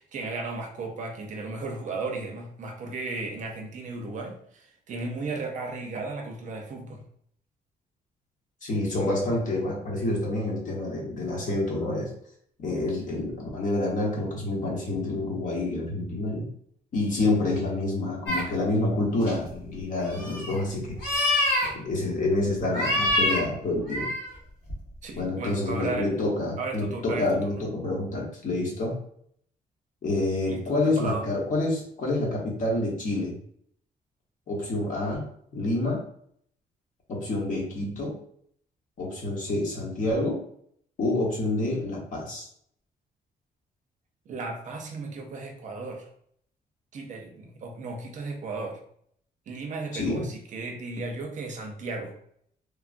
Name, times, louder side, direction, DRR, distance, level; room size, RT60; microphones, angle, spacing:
voice 1, 0.0-7.0 25.0-26.1 26.6-27.6 30.5-31.3 44.3-46.1 46.9-48.8 49.5-52.1, right 3 dB, 50° right, 2 dB, 0.5 m, -35 dB
voice 2, 8.6-12.1 12.6-16.5 16.9-21.0 21.7-24.1 25.2-29.0 30.0-33.4 34.5-35.3 35.5-36.0 37.1-38.2 39.0-40.4 41.0-42.4 49.9-50.2, left 2 dB, 55° left, -2 dB, 1.0 m, -28 dB
sound 1, 18.3-18.4 19.2-19.6 20.1-20.6 20.9-21.7 22.7-23.4 23.7-24.3 24.7-24.8, left 1 dB, 80° left, 1.4 m, -25 dB
3.3 x 2.2 x 2.5 m, 0.65 s
cardioid pair, 155°, 16 cm